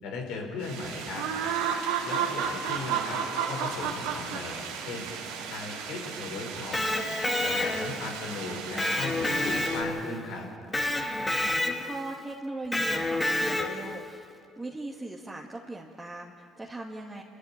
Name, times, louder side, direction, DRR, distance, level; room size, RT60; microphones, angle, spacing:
voice 1, 0.0-1.3 2.0-3.2 3.5-5.1 5.5-6.8 7.4-10.5, left 3 dB, 75° left, 2 dB, 5.0 m, -37 dB
sound 1, 0.6-9.8, right 7 dB, 90° right, 3.3 m, -33 dB
Electric guitar, 6.6-8.1 8.8-10.2 10.7-12.0 12.7-13.9, left 1 dB, 20° left, 2.2 m, -28 dB
voice 2, 11.8-14.3 14.6-17.2, right 2 dB, 15° right, -3 dB, 2.2 m, -39 dB
29.0 x 14.5 x 9.1 m, 2.5 s
supercardioid pair, 75°, 0 cm